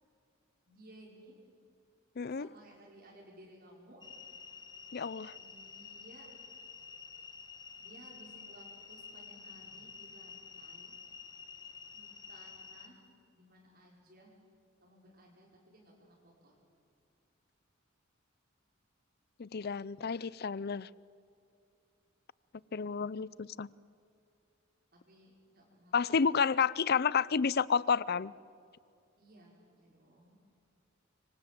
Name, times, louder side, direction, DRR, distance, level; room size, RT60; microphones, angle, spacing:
voice 1, 0.7-1.4 2.2-4.1 5.3-6.3 7.8-10.9 11.9-13.1 13.3-14.4 14.8-16.6 24.9-26.3 29.2-30.4, right 1 dB, 45° right, 5.5 m, -58 dB
voice 2, 2.2-2.5 4.9-5.3 19.4-20.9 22.7-23.7 25.9-28.3, left 6 dB, 50° left, 0.5 m, -30 dB
sound 1, 4.0-12.9, left 5 dB, 20° left, 1.5 m, -50 dB
27.0 x 24.0 x 7.7 m
head